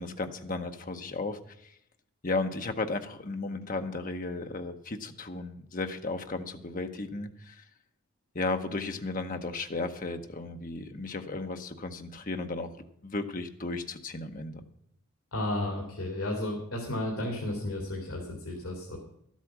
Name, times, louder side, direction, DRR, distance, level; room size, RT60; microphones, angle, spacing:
voice 1, 0.0-1.8 2.2-7.6 8.3-12.7 13.0-14.6, left 3 dB, 35° left, 6 dB, 0.8 m, -34 dB
voice 2, 15.3-19.0, left 1 dB, 70° left, 0 dB, 2.4 m, -33 dB
12.5 x 8.3 x 6.0 m, 0.77 s
head